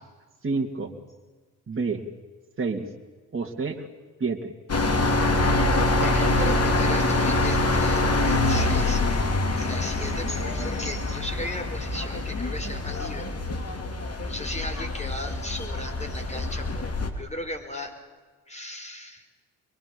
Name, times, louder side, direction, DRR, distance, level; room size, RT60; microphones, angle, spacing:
voice 1, 0.4-0.9 1.7-2.0 2.6-2.9 3.3-3.9 4.2-4.5, right 4 dB, 30° right, 2 dB, 2.7 m, -28 dB
sound 1, 4.7-17.1, left 2 dB, 35° left, 2.9 m, -25 dB
voice 2, 6.0-13.3 13.6-13.8 14.3-17.9 18.5-19.2, left 1 dB, 15° left, 5 dB, 4.8 m, -37 dB
23.5 x 22.5 x 7.2 m, 1.3 s
hypercardioid pair, 50°, 40 cm